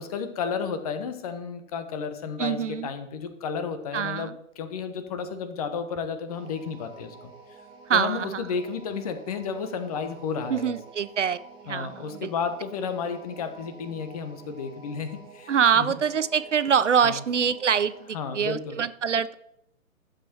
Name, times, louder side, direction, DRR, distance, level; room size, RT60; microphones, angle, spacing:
voice 1, 0.0-7.3 7.9-10.8 11.7-15.9 17.0-17.2 18.1-18.8, left 6 dB, 25° left, 9 dB, 1.1 m, -32 dB
voice 2, 2.4-2.9 3.9-4.3 7.9-8.3 10.5-11.4 11.6-12.3 15.5-17.9 18.3-19.3, right 7 dB, 60° right, 15 dB, 0.6 m, -24 dB
sound 1, 6.3-18.1, right 4 dB, 10° right, 1.6 m, -49 dB
12.0 x 7.6 x 4.5 m, 0.78 s
figure-of-eight pair, 130°, 42 cm